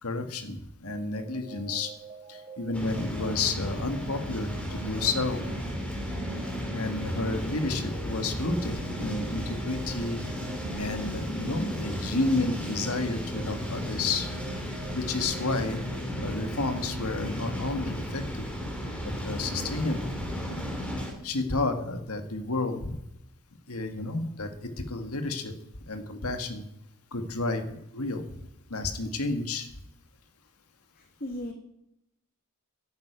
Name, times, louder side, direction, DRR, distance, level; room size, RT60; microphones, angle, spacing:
voice 1, 0.0-1.9 2.3-5.4 6.7-10.2 10.7-14.3 14.9-15.8 16.2-18.4 19.0-20.1 21.2-23.0 23.7-25.5 25.9-26.6 27.1-27.6 27.9-28.2 28.7-29.7, left 3 dB, 80° left, 7 dB, 1.7 m, -31 dB
sound 1, 0.8-17.4, right 4 dB, 30° right, 3.3 m, -48 dB
sound 2, 2.7-21.1, equal, 5° left, 2.9 m, -34 dB
voice 2, 31.0-31.5, left 1 dB, 45° left, 3 dB, 1.6 m, -37 dB
11.5 x 9.3 x 9.0 m, 0.81 s
head